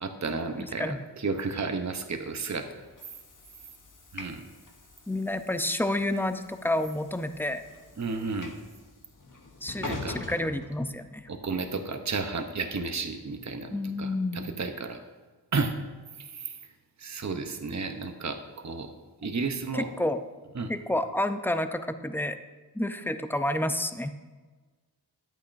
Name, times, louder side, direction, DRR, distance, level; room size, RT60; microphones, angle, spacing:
voice 1, 0.0-2.7 4.1-4.4 8.0-8.6 9.8-10.2 11.3-15.0 15.5-15.7 16.3-16.6 17.0-18.9 19.2-19.9 20.5-20.7, right 4 dB, 45° right, 6 dB, 0.8 m, -32 dB
voice 2, 0.6-1.0 5.1-7.6 9.6-11.3 13.7-14.4 19.7-20.2 20.7-22.4 22.7-24.1, left 1 dB, 5° left, 9 dB, 0.5 m, -29 dB
Train / Sliding door, 2.1-11.4, left 2 dB, 50° left, 1.0 m, -45 dB
10.5 x 8.6 x 2.6 m, 1.3 s
wide cardioid pair, 40°, 40 cm